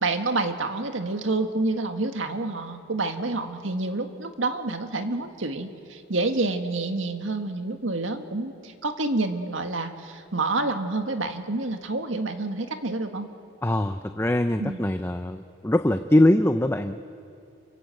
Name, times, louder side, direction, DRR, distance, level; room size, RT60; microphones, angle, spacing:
voice 1, 0.0-13.3 14.6-14.8, right 2 dB, 85° right, 6 dB, 1.8 m, -28 dB
voice 2, 13.6-17.0, left 1 dB, 10° left, 8 dB, 0.5 m, -22 dB
28.5 x 25.5 x 7.8 m, 2.5 s
head